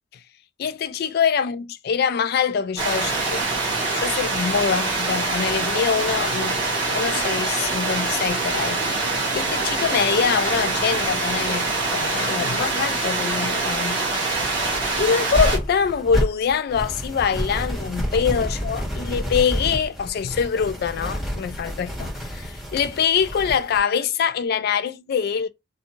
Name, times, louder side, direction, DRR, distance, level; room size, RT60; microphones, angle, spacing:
voice 1, 0.6-3.4 3.9-6.6 6.9-8.8 9.3-14.0 15.0-25.5, left 7 dB, 55° left, 0.3 m, -24 dB
sound 1, 2.8-15.6, right 3 dB, 25° right, 1.3 m, -24 dB
sound 2, 14.3-23.8, equal, ahead, 1.3 m, -29 dB
2.6 x 2.3 x 2.8 m
head